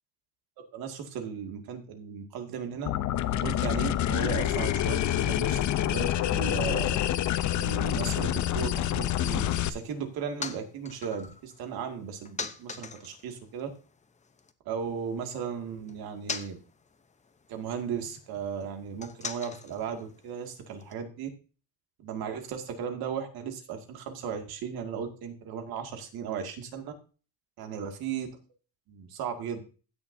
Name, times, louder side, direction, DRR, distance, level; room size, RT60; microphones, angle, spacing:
voice 1, 0.7-2.9 3.4-7.0 7.5-13.7 14.7-16.6 17.5-21.3 22.0-26.9 27.6-28.3 28.9-29.6, right 7 dB, 70° right, 5 dB, 2.2 m, -36 dB
sound 1, 2.8-9.7, left 12 dB, 50° left, 0.7 m, -27 dB
sound 2, 9.9-14.5 14.8-20.9, left 5 dB, 20° left, 0.8 m, -44 dB
16.0 x 6.6 x 2.7 m, 0.36 s
cardioid pair, 130°, 38 cm